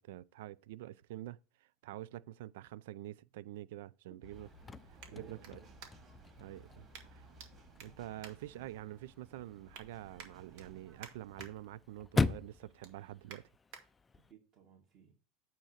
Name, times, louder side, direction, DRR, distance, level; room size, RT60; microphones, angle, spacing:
voice 1, 0.0-4.5 4.9-5.6 6.4-6.9 7.1-7.3 7.8-13.5, right 14 dB, 80° right, 0.3 m, -47 dB
sound 1, 3.7-6.3 6.9-7.5 7.8-9.1 9.4-9.9 10.2-11.5 11.9-12.2 12.5-13.8 14.4-14.5, right 7 dB, 65° right, 1.8 m, -55 dB
sound 2, 4.2-11.5, right 1 dB, 25° right, 2.3 m, -59 dB
Chirp tweet / Car / Slam, 4.3-14.3, left 3 dB, 15° left, 0.3 m, -41 dB
voice 2, 5.1-5.8 14.1-15.2, right 6 dB, 45° right, 2.0 m, -58 dB
8.8 x 3.0 x 6.4 m
supercardioid pair, 130°, 0 cm